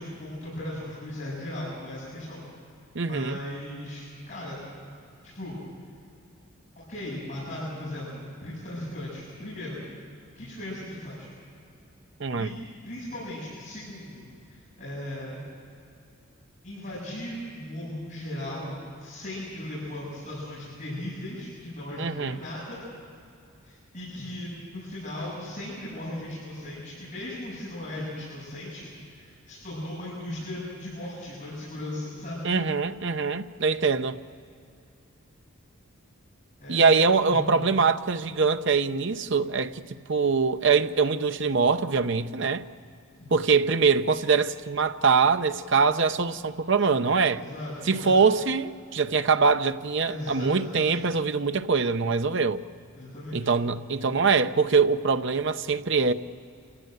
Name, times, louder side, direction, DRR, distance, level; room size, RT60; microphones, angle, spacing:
voice 1, 0.0-2.4 3.1-4.6 5.2-5.6 6.8-9.8 10.4-11.3 12.4-12.5 12.8-15.4 16.6-22.8 23.6-32.5 36.6-36.8 37.2-37.6 43.2-43.4 47.3-48.1 50.0-51.0 52.9-53.5, left 1 dB, 40° left, 7.9 m, -37 dB
voice 2, 2.9-3.4 12.2-12.5 22.0-22.4 32.4-34.2 36.7-39.8 40.1-42.6 43.3-47.4 47.9-52.6 53.3-56.1, right 5 dB, 55° right, 0.8 m, -23 dB
27.5 x 16.0 x 9.3 m
head